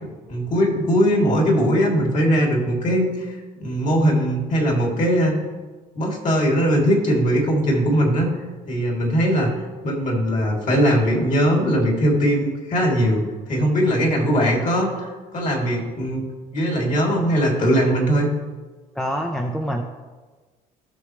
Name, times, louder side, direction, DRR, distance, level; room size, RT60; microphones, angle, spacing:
voice 1, 0.0-5.4 5.9-8.3 8.7-9.5 9.8-16.2 16.5-18.3, equal, 50° left, -1 dB, 3.1 m, -20 dB
voice 2, 18.9-19.8, equal, 5° left, 2 dB, 0.8 m, -25 dB
17.5 x 6.3 x 3.2 m, 1.3 s
cardioid pair, 110°, 17 cm